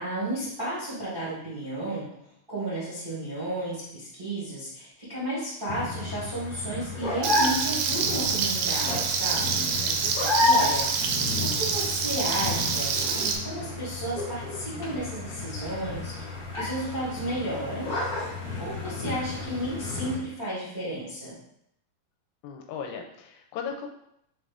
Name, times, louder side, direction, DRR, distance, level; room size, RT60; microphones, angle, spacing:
voice 1, 0.0-2.1 2.5-9.7 10.4-10.9 11.4-16.1 16.6-17.9 18.6-21.4, right 1 dB, 55° right, -10 dB, 0.5 m, -33 dB
sound 1, 5.7-20.2, left 2 dB, 60° left, 0.9 m, -31 dB
Frying (food), 7.2-13.4, right 6 dB, 80° right, 2.2 m, -27 dB
voice 2, 9.8-10.6 22.4-23.9, left 6 dB, 85° left, 3 dB, 2.4 m, -38 dB
5.9 x 2.5 x 3.4 m, 0.75 s
omnidirectional pair, 4.2 m